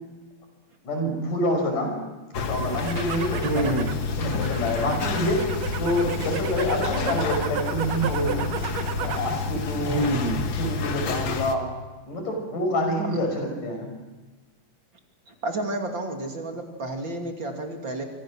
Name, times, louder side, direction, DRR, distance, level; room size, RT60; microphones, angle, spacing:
voice 1, 0.8-2.0 2.5-3.8 4.2-5.4 5.8-8.4 9.0-10.1 10.6-11.7 12.1-13.9, left 1 dB, 85° left, 3 dB, 7.1 m, -27 dB
sound 1, 2.3-11.6, left 6 dB, 50° left, 1.7 m, -30 dB
sound 2, 2.6-9.3 9.7-10.2, right 8 dB, 60° right, 2.1 m, -33 dB
voice 2, 3.4-3.9 9.8-10.4 13.1-13.2 15.3-18.0, right 2 dB, 40° right, 2 dB, 3.2 m, -29 dB
27.5 x 24.0 x 6.3 m, 1.2 s
omnidirectional pair, 3.6 m